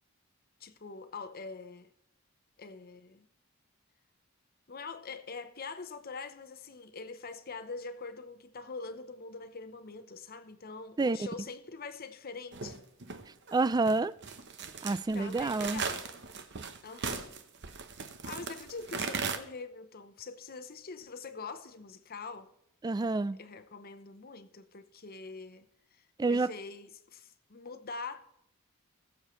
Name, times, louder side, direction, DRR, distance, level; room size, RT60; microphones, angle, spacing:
voice 1, 0.6-1.9 2.6-3.3 4.7-12.8 15.1-16.1 16.8-17.3 18.2-22.5 23.4-25.7 25.9-28.2, left 4 dB, 45° left, 0.8 m, -44 dB
sound 1, 12.5-19.4, right 5 dB, 55° right, 1.0 m, -38 dB
voice 2, 13.5-14.1 14.8-15.8 22.8-23.4 26.2-26.5, right 3 dB, 20° right, 0.3 m, -28 dB
21.0 x 7.2 x 3.2 m
head